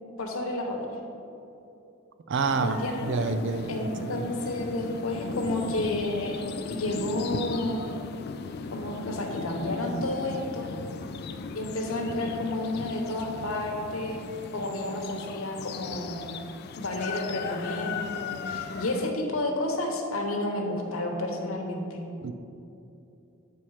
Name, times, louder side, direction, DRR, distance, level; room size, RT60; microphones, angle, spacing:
voice 1, 0.2-1.0 2.6-3.1 3.7-6.4 6.7-7.9 8.7-10.7 11.5-14.2 14.5-16.2 16.8-22.0, left 1 dB, 80° left, 1 dB, 1.1 m, -31 dB
voice 2, 2.3-4.3 22.2-22.3, right 4 dB, 60° right, 9 dB, 0.4 m, -29 dB
sound 1, 2.4-19.1, left 5 dB, 50° left, 0.3 m, -37 dB
8.6 x 4.3 x 4.8 m, 2.7 s
head